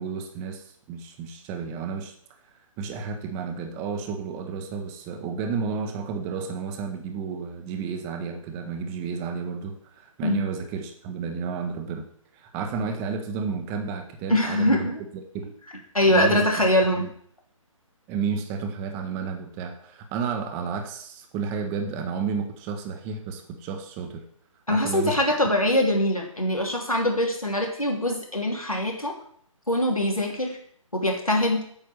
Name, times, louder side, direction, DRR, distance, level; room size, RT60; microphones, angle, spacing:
voice 1, 0.0-2.1 2.8-12.1 12.3-14.9 15.1-15.5 16.1-16.7 16.9-17.1 18.1-24.2 24.7-25.1, right 5 dB, 15° right, 6 dB, 0.8 m, -31 dB
voice 2, 14.3-15.0 15.9-17.1 24.7-29.2 29.7-30.6 30.9-31.6, left 1 dB, 90° left, 0 dB, 3.0 m, -23 dB
8.8 x 5.6 x 8.0 m, 0.62 s
figure-of-eight pair, 140°, 18 cm